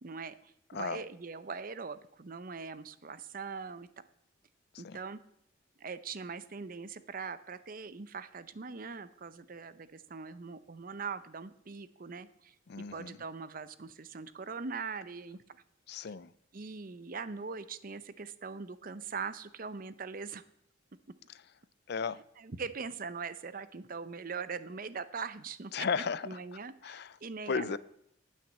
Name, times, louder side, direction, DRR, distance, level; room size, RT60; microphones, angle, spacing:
voice 1, 0.0-3.9 4.8-5.2 5.8-15.6 16.5-20.4 22.4-25.9 26.2-27.8, right 5 dB, 45° right, 14 dB, 0.6 m, -41 dB
voice 2, 12.7-13.2 15.9-16.3 21.9-22.2 25.7-26.4 26.8-27.2 27.5-27.8, left 5 dB, 55° left, 18 dB, 0.5 m, -34 dB
9.2 x 9.0 x 8.5 m, 0.76 s
head